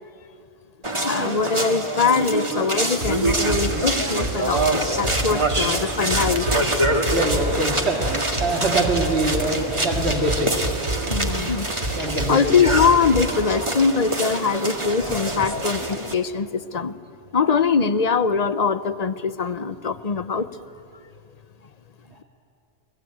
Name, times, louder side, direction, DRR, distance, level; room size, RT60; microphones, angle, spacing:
sound 1, 0.8-16.1, right 1 dB, 25° right, 1.9 m, -25 dB
voice 1, 0.9-6.5 11.1-11.7 12.3-17.0 17.3-20.5, left 5 dB, 40° left, 14 dB, 0.7 m, -22 dB
sound 2, 2.8-13.3, right 2 dB, 45° right, 2.7 m, -29 dB
voice 2, 7.0-10.5 11.9-12.4, right 2 dB, 65° right, -1 dB, 2.5 m, -24 dB
28.0 x 20.5 x 8.7 m, 2.6 s
omnidirectional pair, 1.2 m